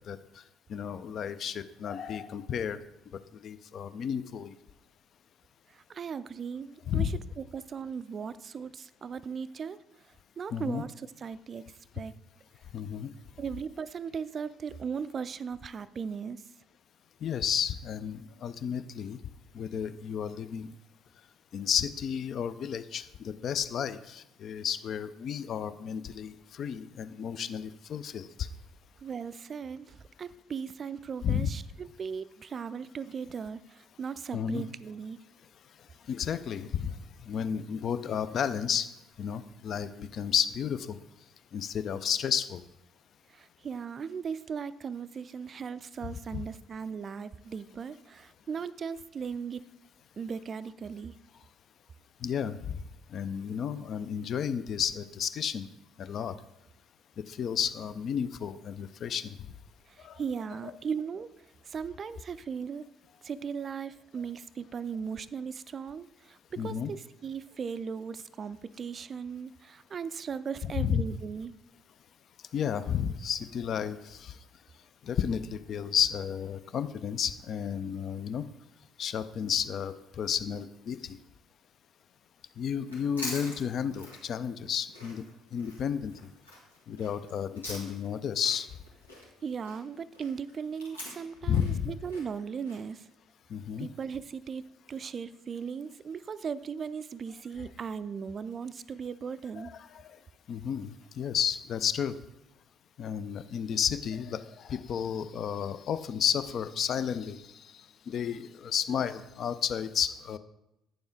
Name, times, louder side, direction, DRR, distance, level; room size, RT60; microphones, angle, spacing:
voice 1, 0.7-2.8 3.3-4.5 6.9-7.1 10.5-10.8 12.7-13.1 17.2-19.2 19.5-20.7 21.5-28.5 31.2-31.5 34.3-34.6 36.1-38.9 39.2-41.0 41.5-42.6 46.3-46.4 52.2-52.8 53.1-55.7 56.0-56.4 57.3-59.4 60.0-60.2 60.6-60.7 66.6-66.9 70.8-71.0 72.5-74.4 75.0-78.5 79.0-81.2 82.6-85.2 85.5-86.1 86.9-88.7 91.4-92.0 93.5-93.9 99.6-100.2 100.5-102.2 103.0-110.4, left 8 dB, 45° left, 13 dB, 0.4 m, -32 dB
voice 2, 5.7-9.8 10.4-12.1 13.4-16.4 29.0-35.2 43.3-49.7 50.2-51.1 59.9-61.3 61.6-62.8 63.2-71.5 89.4-93.1 93.8-94.6 94.9-99.7, right 6 dB, 40° right, 16 dB, 0.3 m, -38 dB
Chewing mastication, 82.8-88.2 88.4-92.8, left 1 dB, 85° left, 1.4 m, -44 dB
9.0 x 6.9 x 3.9 m, 0.89 s
figure-of-eight pair, 50°, 0 cm